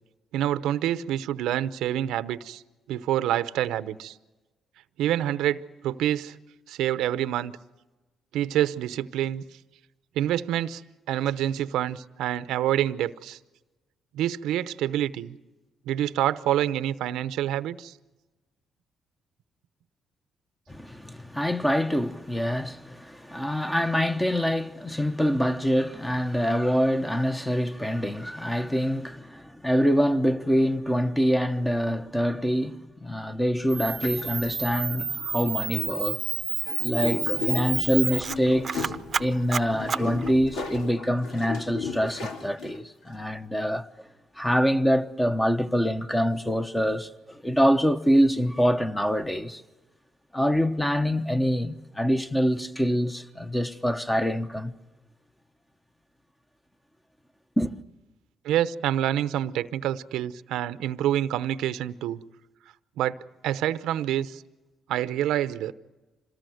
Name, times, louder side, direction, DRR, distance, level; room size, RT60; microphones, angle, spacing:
voice 1, 0.3-2.6 2.9-4.1 5.0-6.3 6.7-7.5 8.3-9.4 10.2-10.8 11.1-13.4 14.1-15.4 15.9-17.9 58.4-62.2 63.0-63.2 63.4-64.4 64.9-65.7, right 12 dB, 90° right, 0.8 m, -27 dB
voice 2, 20.7-36.2 36.8-38.9 39.2-43.9 44.4-49.6 50.3-54.7 57.6-57.7, equal, 10° left, 1.1 m, -25 dB
Camera, 33.7-40.8, right 6 dB, 45° right, 0.8 m, -30 dB
sound 1, 34.0-34.5 35.8-36.0 36.6-43.0, left 4 dB, 85° left, 2.4 m, -35 dB
27.0 x 19.5 x 7.8 m
cardioid pair, 90°, 0 cm